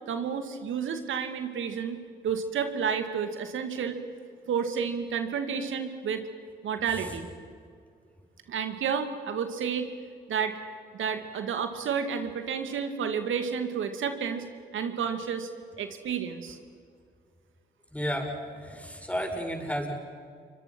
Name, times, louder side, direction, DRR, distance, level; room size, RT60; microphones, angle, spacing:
voice 1, 0.1-4.0 4.5-6.2 6.6-7.3 8.5-9.9 10.3-10.6 10.9-14.4 14.7-15.5 15.8-16.6, right 7 dB, 75° right, 7 dB, 2.3 m, -31 dB
voice 2, 17.9-19.9, equal, 5° left, 1 dB, 7.4 m, -32 dB
29.5 x 24.0 x 6.2 m, 2.1 s
hypercardioid pair, 40°, 21 cm